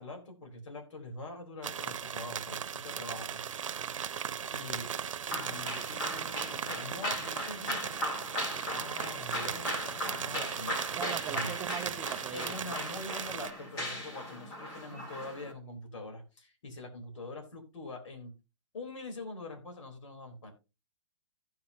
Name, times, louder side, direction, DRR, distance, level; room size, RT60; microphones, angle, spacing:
voice 1, 0.0-3.4 4.5-4.9 5.3-8.4 8.7-10.8 11.3-11.6 12.3-18.3 18.7-20.5, left 2 dB, 70° left, 3.9 m, -44 dB
sound 1, 1.6-13.5, right 8 dB, 80° right, 0.8 m, -37 dB
sound 2, 5.3-15.5, equal, 20° left, 1.8 m, -38 dB
voice 2, 10.9-12.8, right 9 dB, 10° right, 0.5 m, -40 dB
15.0 x 6.0 x 2.8 m
hypercardioid pair, 165°, 16 cm